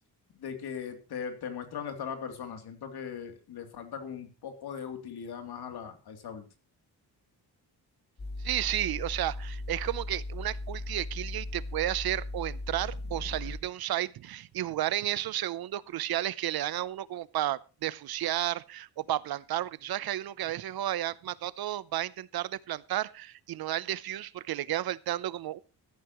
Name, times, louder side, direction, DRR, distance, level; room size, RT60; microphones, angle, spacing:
voice 1, 0.3-6.4, left 7 dB, 75° left, 3.1 m, -39 dB
sound 1, 8.2-13.6, left 2 dB, 25° left, 2.1 m, -37 dB
voice 2, 8.4-25.6, right 13 dB, 65° right, 0.7 m, -32 dB
15.0 x 13.5 x 3.1 m
wide cardioid pair, 175°, 39 cm